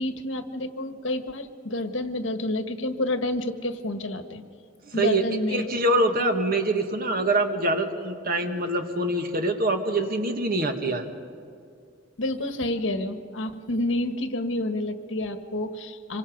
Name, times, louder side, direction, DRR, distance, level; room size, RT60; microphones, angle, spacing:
voice 1, 0.0-4.4 4.9-5.7 6.2-6.3 12.2-16.2, left 1 dB, 75° left, 8 dB, 1.5 m, -29 dB
voice 2, 4.8-5.2 5.5-11.0, right 2 dB, 50° right, 5 dB, 1.9 m, -25 dB
26.5 x 24.5 x 5.3 m, 2.4 s
head